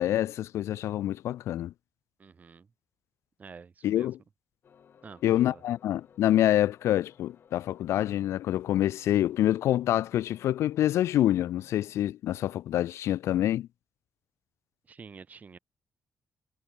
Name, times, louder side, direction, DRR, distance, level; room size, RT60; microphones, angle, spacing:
voice 1, 0.0-1.7 3.8-4.2 5.2-13.7, left 12 dB, 80° left, 0.4 m, -26 dB
voice 2, 2.2-2.7 3.4-4.1 5.0-5.6 14.8-15.6, right 5 dB, 35° right, 2.2 m, -48 dB
sound 1, 4.6-12.0, left 7 dB, 50° left, 5.9 m, -58 dB
cardioid pair, 130°, 5 cm